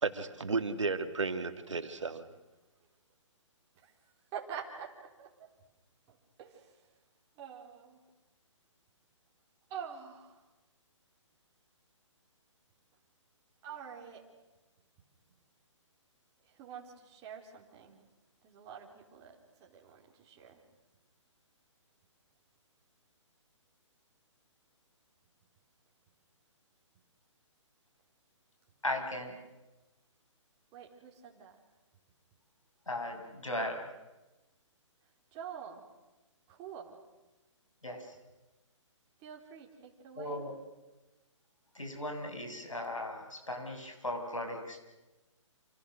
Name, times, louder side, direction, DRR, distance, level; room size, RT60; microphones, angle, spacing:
voice 1, 0.0-2.3, right 4 dB, 70° right, 8 dB, 2.5 m, -33 dB
voice 2, 4.3-5.5 6.1-6.9 7.4-8.0 9.7-10.4 13.6-14.3 16.5-18.0 18.4-20.6 30.7-31.6 35.3-35.9 36.5-37.0 39.2-40.4, right 7 dB, 25° right, 0 dB, 3.7 m, -47 dB
voice 3, 28.8-29.4 32.9-33.8 37.8-38.2 40.2-40.5 41.7-44.8, left 1 dB, 85° left, 4 dB, 7.1 m, -37 dB
28.5 x 28.0 x 6.5 m, 1.1 s
figure-of-eight pair, 135°, 16 cm